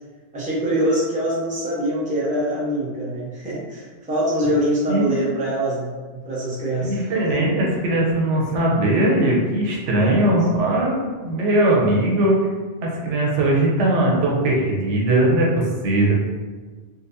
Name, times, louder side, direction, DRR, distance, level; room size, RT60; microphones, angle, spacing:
voice 1, 0.3-7.0 7.2-7.4 10.0-10.4, right 1 dB, 10° right, -7 dB, 0.6 m, -24 dB
voice 2, 4.9-5.2 6.8-11.0 11.2-12.5 12.8-16.1, right 1 dB, 85° right, -3 dB, 1.1 m, -20 dB
3.9 x 2.2 x 2.6 m, 1.4 s
omnidirectional pair, 1.2 m